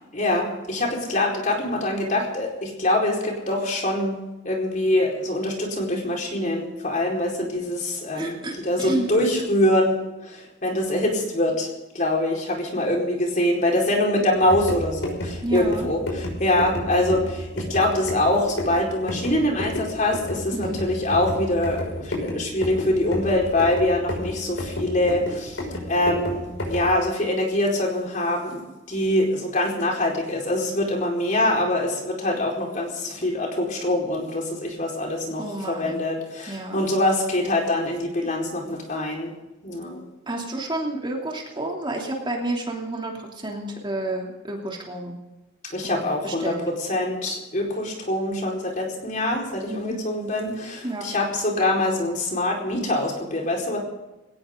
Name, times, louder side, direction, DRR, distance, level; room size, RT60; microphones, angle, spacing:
voice 1, 0.1-8.4 8.6-11.7 11.9-25.6 25.9-28.6 28.9-39.3 39.6-40.0 45.6-53.8, left 1 dB, 40° left, 0 dB, 4.7 m, -24 dB
voice 2, 8.1-9.1 15.4-15.9 20.5-20.9 35.4-36.0 36.5-36.8 40.3-45.2 45.8-46.6 49.7-50.0 50.8-51.1, right 2 dB, 25° right, -1 dB, 3.0 m, -30 dB
sound 1, 14.4-27.0, left 1 dB, 90° left, 6.0 m, -31 dB
20.5 x 18.0 x 3.9 m, 1.0 s
head